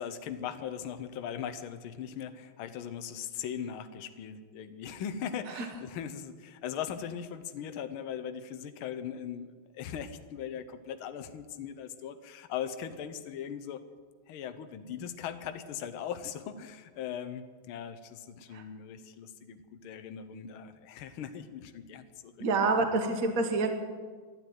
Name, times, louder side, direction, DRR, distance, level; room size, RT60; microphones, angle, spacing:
voice 1, 0.0-13.8 14.3-22.3, left 8 dB, 80° left, 10 dB, 1.7 m, -39 dB
voice 2, 22.4-23.7, right 3 dB, 45° right, 6 dB, 1.6 m, -27 dB
12.5 x 12.0 x 9.3 m, 1.5 s
omnidirectional pair, 2.3 m